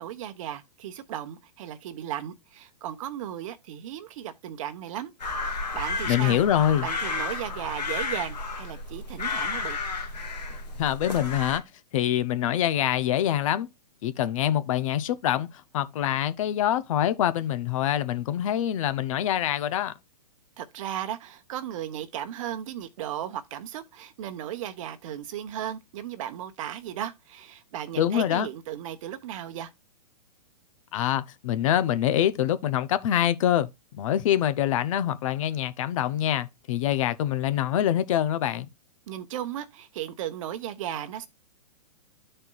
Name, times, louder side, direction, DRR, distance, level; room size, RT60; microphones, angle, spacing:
voice 1, 0.0-5.1 5.4-6.4 6.8-9.8 20.6-29.7 39.1-41.3, right 11 dB, 50° right, 1.1 m, -36 dB
sound 1, 5.2-11.6, left 4 dB, 90° left, 1.9 m, -32 dB
voice 2, 6.1-6.9 10.8-11.6 11.9-13.7 14.0-15.5 15.7-19.9 28.0-28.5 30.9-38.7, left 11 dB, 55° left, 0.7 m, -25 dB
13.0 x 4.4 x 2.3 m
hypercardioid pair, 120°, 21 cm